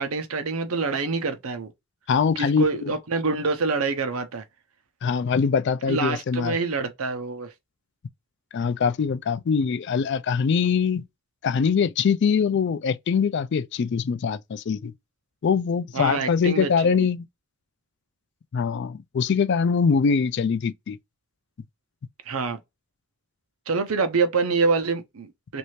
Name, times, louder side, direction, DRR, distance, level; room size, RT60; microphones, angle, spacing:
voice 1, 0.0-1.7 2.4-4.4 5.9-7.5 15.9-17.1 22.3-22.6 23.7-25.6, right 4 dB, 75° right, 0.7 m, -26 dB
voice 2, 2.1-2.9 5.0-6.6 8.5-11.0 11.4-14.9 15.4-17.3 18.5-21.0, left 6 dB, 50° left, 0.3 m, -23 dB
3.2 x 2.6 x 3.1 m
head